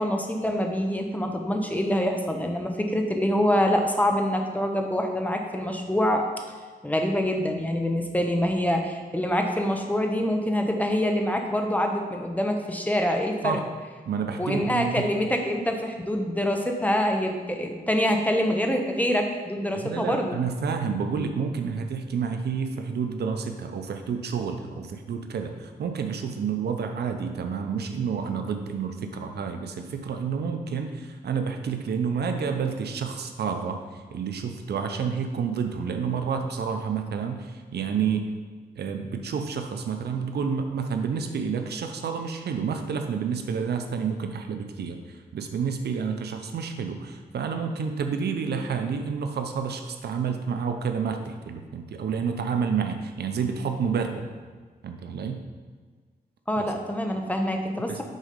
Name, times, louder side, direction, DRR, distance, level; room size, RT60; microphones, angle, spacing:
voice 1, 0.0-6.3 6.8-13.6 14.4-20.4 56.5-58.0, equal, 10° left, 3 dB, 0.7 m, -25 dB
voice 2, 14.1-15.1 19.7-38.3 38.8-54.3 54.8-55.4 56.6-56.7 57.9-58.0, right 6 dB, 85° right, 6 dB, 0.6 m, -29 dB
6.4 x 4.1 x 5.2 m, 1.5 s
wide cardioid pair, 115°, 17 cm